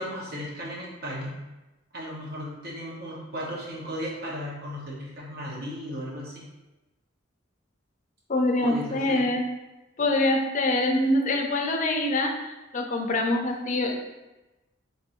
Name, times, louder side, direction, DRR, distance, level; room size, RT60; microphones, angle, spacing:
voice 1, 0.0-1.3 1.9-6.4 8.6-9.3, equal, 55° right, -4 dB, 1.0 m, -35 dB
voice 2, 8.3-9.5 10.0-12.4 12.7-14.0, left 2 dB, 40° left, 3 dB, 0.5 m, -24 dB
3.4 x 2.6 x 4.3 m, 1.0 s
head